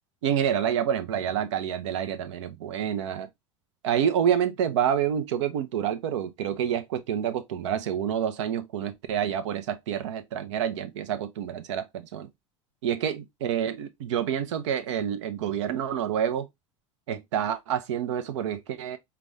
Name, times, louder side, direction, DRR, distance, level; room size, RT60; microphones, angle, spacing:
voice 1, 0.2-3.3 3.8-12.3 12.8-16.5 17.1-19.0, right 9 dB, 70° right, 0.7 m, -28 dB
4.8 x 2.3 x 3.5 m
hypercardioid pair, 75°, 16 cm